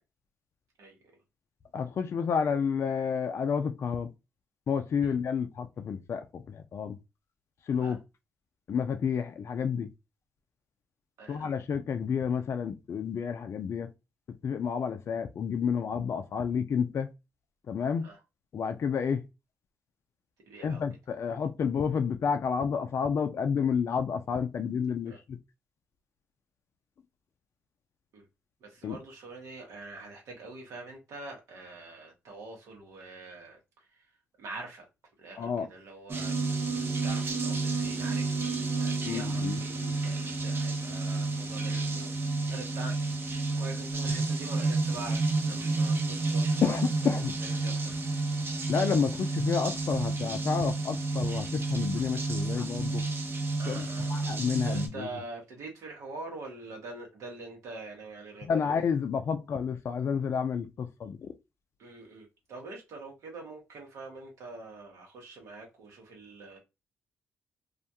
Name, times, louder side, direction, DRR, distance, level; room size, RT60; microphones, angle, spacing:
voice 1, 1.7-4.1 4.7-7.0 7.7-8.0 8.7-9.9 11.3-13.9 14.4-17.1 17.7-18.1 18.5-19.3 20.6-25.4 28.8-29.0 35.4-35.7 39.1-39.6 46.6-47.3 48.7-53.0 53.7-55.1 58.4-61.3, left 6 dB, 55° left, 0.3 m, -30 dB
voice 2, 11.2-11.5 18.0-18.2 20.5-20.8 25.1-25.2 28.1-28.3 28.6-34.0 34.4-34.9 35.2-36.3 36.6-42.9 43.6-45.2 45.4-46.8 47.4-48.0 53.6-54.4 54.6-58.7 61.8-66.6, right 3 dB, 75° right, 1.0 m, -45 dB
sound 1, 36.1-54.9, right 3 dB, 45° right, 0.7 m, -30 dB
2.4 x 2.2 x 2.7 m
supercardioid pair, 50°, 5 cm